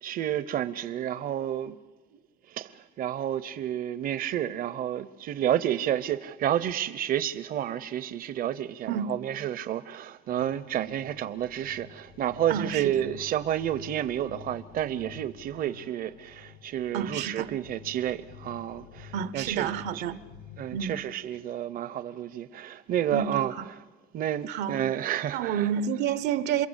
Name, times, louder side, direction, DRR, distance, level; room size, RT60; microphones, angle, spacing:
voice 1, 0.0-1.8 2.1-2.2 2.5-19.7 19.9-20.0 20.6-23.5 24.1-25.7, right 11 dB, 60° right, 0.8 m, -30 dB
sound 1, 10.3-21.0, left 7 dB, 90° left, 2.5 m, -49 dB
voice 2, 12.5-12.9 16.9-17.5 19.1-20.2 20.7-20.9 23.1-23.6 24.5-24.8 25.3-26.7, right 8 dB, 85° right, 1.0 m, -29 dB
28.5 x 22.5 x 8.1 m
cardioid pair, 110°, 17 cm